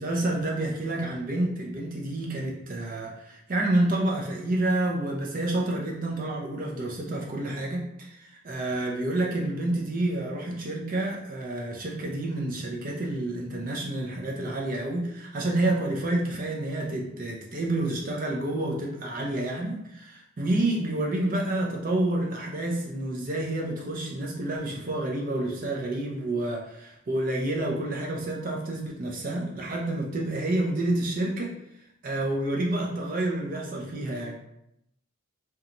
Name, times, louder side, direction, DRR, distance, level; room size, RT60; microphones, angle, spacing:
voice 1, 0.0-8.2 8.4-31.5 32.0-34.4, right 1 dB, 40° right, -1 dB, 0.5 m, -29 dB
2.9 x 2.2 x 2.5 m, 0.80 s
head